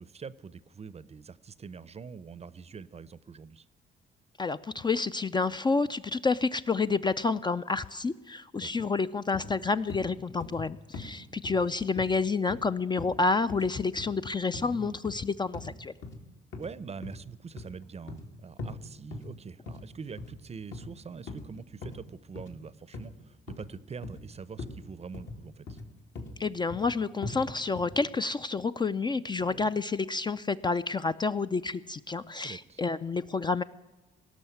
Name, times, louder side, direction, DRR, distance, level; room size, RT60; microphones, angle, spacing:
voice 1, 0.0-3.6 8.6-8.9 14.6-15.0 16.5-25.8 29.4-29.7 32.4-32.8, right 5 dB, 30° right, 18 dB, 0.6 m, -44 dB
voice 2, 4.4-15.9 26.4-33.6, left 4 dB, 20° left, 11 dB, 0.4 m, -29 dB
sound 1, 9.3-9.5 9.9-10.1 10.4-10.7 10.9-11.1 11.4-11.6 12.0-12.1 12.5-12.7 13.0-13.2 13.5-13.7 14.0-14.1 14.5-14.7 15.1-15.2 15.5-15.7 16.0-16.2 16.5-16.7 17.0-17.2 17.6-18.3 18.6-18.7 19.1-19.3 19.7-19.9 20.2-20.4 20.7-20.9 21.3-21.5 21.8-22.0 22.4-22.6 22.9-23.1 23.5-23.7 24.0-24.2 24.6-24.8 25.1-25.4 25.7-25.9 26.2-26.3 26.7-26.9 27.2-27.4 27.8-28.0, left 3 dB, 70° left, 2.3 m, -40 dB
17.5 x 6.3 x 9.3 m, 1.2 s
cardioid pair, 90°, 20 cm